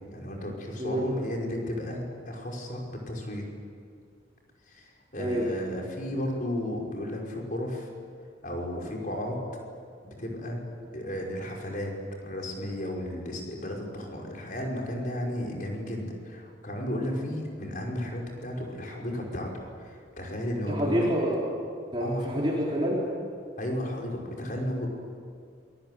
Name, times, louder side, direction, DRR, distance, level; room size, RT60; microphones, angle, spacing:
voice 1, 0.1-3.5 4.7-7.9 8.4-9.4 10.0-10.6 10.9-11.9 12.2-21.1 22.0-22.3 23.6-24.9, left 1 dB, 45° left, -1 dB, 5.5 m, -34 dB
voice 2, 0.8-1.1 1.4-1.5 5.2-5.5 20.7-21.5 21.9-23.1, equal, 25° right, -4 dB, 4.1 m, -27 dB
27.5 x 20.0 x 9.3 m, 2.2 s
head